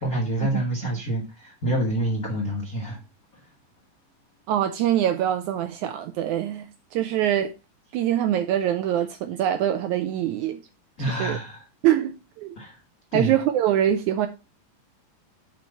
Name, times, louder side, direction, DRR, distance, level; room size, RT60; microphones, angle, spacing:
voice 1, 0.0-3.0 11.0-11.7 12.6-12.8 13.1-13.4, right 1 dB, 65° left, 0.8 m, -27 dB
voice 2, 4.5-6.7 6.9-7.5 7.9-10.6 11.1-11.4 11.8-12.6 13.1-14.3, right 11 dB, 80° right, 1.7 m, -24 dB
7.6 x 4.5 x 5.4 m
omnidirectional pair, 3.9 m